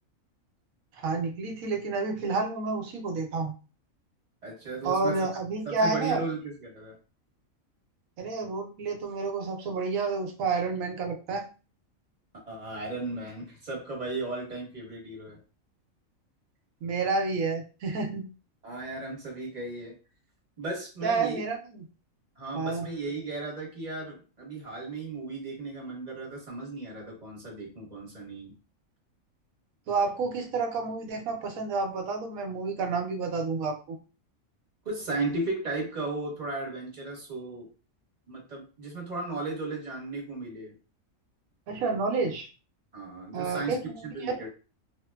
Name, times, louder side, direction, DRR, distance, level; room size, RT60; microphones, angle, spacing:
voice 1, 0.9-3.5 4.8-6.2 8.2-11.5 16.8-18.3 21.0-21.6 22.5-22.9 29.9-34.0 41.7-42.5 43.3-44.5, right 4 dB, 90° right, 4 dB, 1.1 m, -30 dB
voice 2, 4.4-5.3 5.6-7.0 12.4-15.4 18.6-20.0 20.6-21.4 22.4-28.5 34.8-37.7 38.3-40.7 42.9-43.7 44.0-44.5, right 3 dB, 35° right, -3 dB, 1.0 m, -35 dB
3.0 x 2.1 x 2.2 m, 0.34 s
omnidirectional pair, 1.4 m